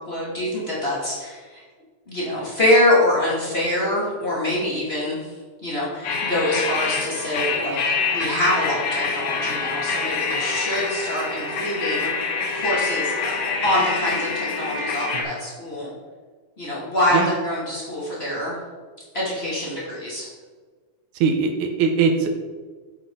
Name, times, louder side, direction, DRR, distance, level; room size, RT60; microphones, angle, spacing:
voice 1, 0.0-1.6 2.1-5.3 5.6-12.1 12.5-13.1 13.6-15.9 16.6-18.5 19.1-20.3, left 1 dB, 20° left, -7 dB, 2.3 m, -24 dB
sound 1, 6.0-15.2, left 4 dB, 80° left, 2.6 m, -26 dB
voice 2, 21.2-22.3, right 5 dB, 80° right, 5 dB, 2.3 m, -21 dB
9.0 x 8.2 x 3.8 m, 1.5 s
omnidirectional pair, 3.4 m